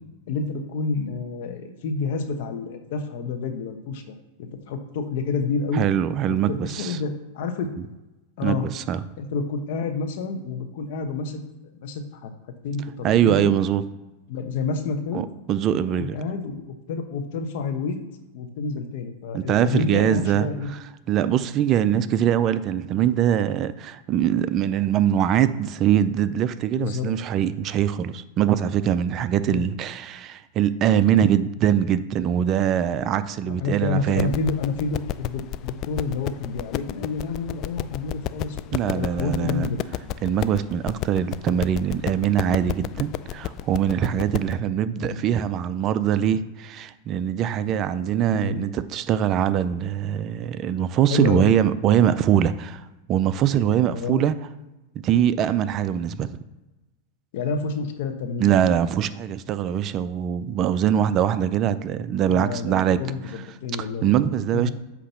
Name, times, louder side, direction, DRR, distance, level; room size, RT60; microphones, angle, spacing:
voice 1, 0.3-5.8 6.3-7.7 8.4-8.6 9.2-11.4 11.7-12.3 12.6-13.5 14.3-15.2 16.0-18.0 18.3-20.7 21.8-22.0 26.7-27.1 29.5-29.6 33.4-39.8 45.0-45.2 48.3-48.6 51.1-51.5 53.9-54.2 57.3-58.6 61.8-61.9 62.2-64.1 64.5-64.7, left 4 dB, 65° left, 7 dB, 1.0 m, -29 dB
voice 2, 5.7-7.0 8.4-9.0 13.0-13.8 15.1-16.2 19.3-20.8 21.1-34.3 38.7-39.7 40.2-52.8 53.1-54.3 55.0-56.3 58.4-63.0 63.8-64.7, right 9 dB, 40° right, 13 dB, 0.4 m, -22 dB
sound 1, 34.1-44.6, left 12 dB, 40° left, 0.3 m, -32 dB
8.3 x 2.9 x 5.6 m, 1.0 s
hypercardioid pair, 120°, 0 cm